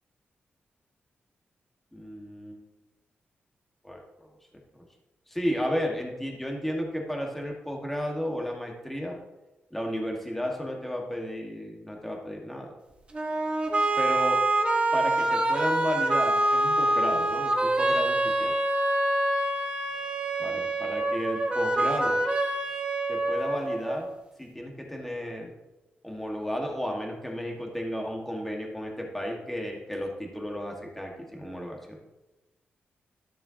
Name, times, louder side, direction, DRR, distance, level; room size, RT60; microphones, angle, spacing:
voice 1, 1.9-2.6 3.8-4.3 5.3-9.2 9.7-12.7 14.0-14.4 14.9-18.5 20.4-22.2 23.1-24.1 24.4-25.5 26.0-32.0, equal, 5° left, 0 dB, 1.6 m, -33 dB
sound 1, 13.1-24.1, right 2 dB, 25° right, 1.2 m, -26 dB
12.5 x 7.0 x 2.8 m, 1.0 s
wide cardioid pair, 120°, 4 cm